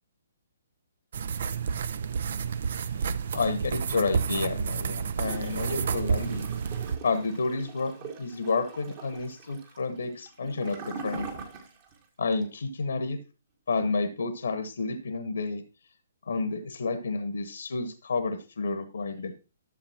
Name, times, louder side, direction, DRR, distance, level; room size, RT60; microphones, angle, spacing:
sound 1, 1.1-7.0, right 6 dB, 50° right, 0.5 m, -30 dB
voice 1, 3.3-6.5 7.0-11.3 12.2-13.2 13.7-15.6 16.3-19.3, left 3 dB, 65° left, 9 dB, 1.1 m, -30 dB
Gurgling / Toilet flush, 5.2-12.0 12.3-12.4, right 5 dB, 35° right, 1.7 m, -42 dB
12.0 x 6.8 x 2.9 m, 0.32 s
figure-of-eight pair, 130°, 0 cm